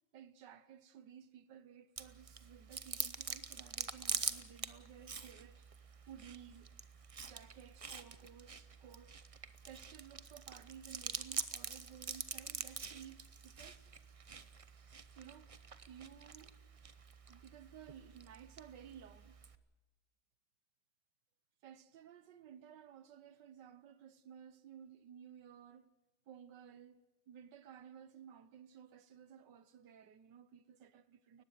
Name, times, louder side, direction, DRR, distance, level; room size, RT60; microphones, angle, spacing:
voice 1, 0.1-5.7 6.1-6.7 7.2-9.3 9.7-13.9 15.2-16.6 17.3-19.4 21.6-25.9 26.3-31.4, right 8 dB, 85° right, 1.7 m, -56 dB
Chewing mastication, 2.0-19.6, right 5 dB, 45° right, 0.4 m, -45 dB
19.5 x 15.0 x 9.2 m
omnidirectional pair, 1.8 m